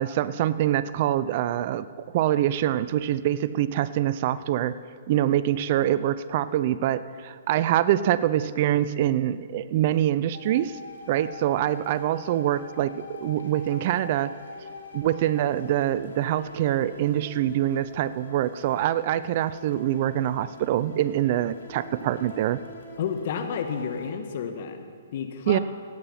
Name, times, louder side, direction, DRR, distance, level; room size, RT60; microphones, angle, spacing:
voice 1, 0.0-4.7 5.1-10.8 11.1-14.3 14.9-22.6 25.5-25.6, right 12 dB, 45° right, 16 dB, 0.5 m, -25 dB
sound 1, 10.3-24.1, left 2 dB, 80° left, 2.3 m, -44 dB
voice 2, 23.0-25.6, left 7 dB, 55° left, 7 dB, 1.5 m, -31 dB
17.0 x 8.8 x 5.7 m, 2.1 s
hypercardioid pair, 130°, 0 cm